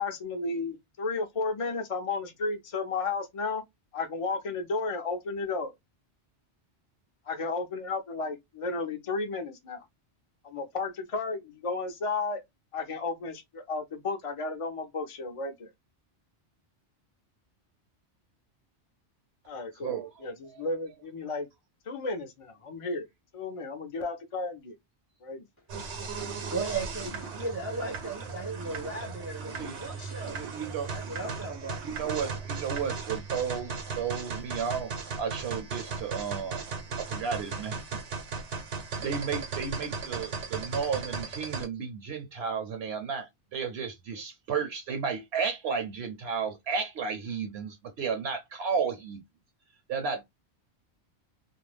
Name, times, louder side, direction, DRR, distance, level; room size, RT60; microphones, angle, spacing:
voice 1, 0.0-3.6 3.9-5.7 7.3-9.8 10.4-12.4 12.7-15.7 19.5-21.5 21.9-23.1 23.3-24.8 25.2-25.5 26.0-26.1, left 3 dB, 45° left, 0.4 m, -33 dB
voice 2, 19.8-20.3 29.6-29.8 30.3-30.9 31.8-36.6 37.0-37.8 39.0-49.2 49.9-50.2, right 6 dB, 70° right, 0.8 m, -33 dB
sound 1, 25.7-41.7, right 5 dB, 90° right, 1.1 m, -37 dB
voice 3, 26.5-30.4 30.9-31.8, right 3 dB, 20° right, 0.4 m, -36 dB
2.4 x 2.1 x 3.1 m
omnidirectional pair, 1.1 m